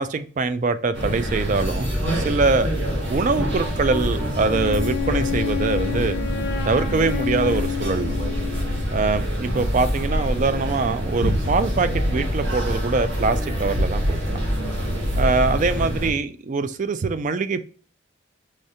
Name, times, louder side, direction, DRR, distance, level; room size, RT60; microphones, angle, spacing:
voice 1, 0.0-2.7 3.1-6.2 6.6-8.2 8.9-14.5 15.2-17.6, right 4 dB, 40° right, 11 dB, 0.3 m, -23 dB
sound 1, 0.9-16.1, equal, 65° right, 1.4 m, -25 dB
Wind instrument woodwind instrument, 4.5-8.9, left 10 dB, 55° left, 0.4 m, -29 dB
4.9 x 3.2 x 2.8 m, 0.41 s
head